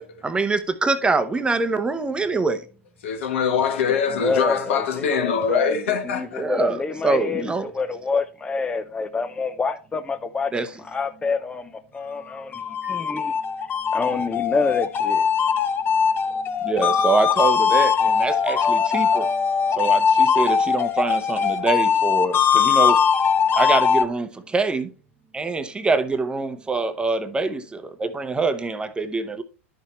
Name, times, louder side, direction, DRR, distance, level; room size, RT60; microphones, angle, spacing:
voice 1, 0.2-2.6 6.4-7.7 10.5-10.7 12.8-13.0 16.6-19.3 19.8-23.0 23.6-24.9 25.3-29.4, right 3 dB, 15° right, 0.9 m, -24 dB
voice 2, 3.0-6.5 12.1-12.2 12.7-12.8, left 6 dB, 70° left, 1.9 m, -23 dB
voice 3, 4.2-10.5 10.8-13.3 13.9-15.3, left 4 dB, 15° left, 0.7 m, -27 dB
sound 1, 12.3-24.0, left 6 dB, 30° left, 1.0 m, -20 dB
11.5 x 6.6 x 3.0 m
hypercardioid pair, 95°, 7 cm